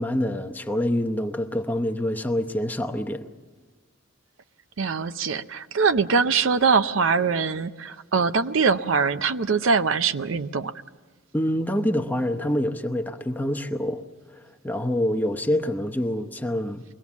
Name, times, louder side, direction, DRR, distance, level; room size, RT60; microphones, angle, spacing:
voice 1, 0.0-3.3 11.3-14.0 14.3-16.8, left 1 dB, 10° left, 0.8 m, -26 dB
voice 2, 4.8-10.7, right 5 dB, 70° right, 0.6 m, -23 dB
23.5 x 18.5 x 7.2 m
head